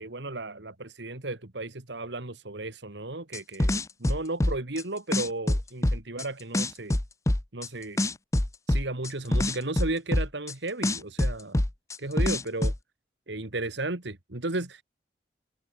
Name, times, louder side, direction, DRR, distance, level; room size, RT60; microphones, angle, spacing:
voice 1, 0.0-7.0 7.5-8.1 8.7-11.6 12.0-12.7 13.3-14.8, right 2 dB, 75° right, 2.1 m, -34 dB
sound 1, 3.3-4.8 5.1-6.2 6.5-7.7 8.0-10.5 10.8-12.8, left 1 dB, 15° left, 0.6 m, -25 dB
head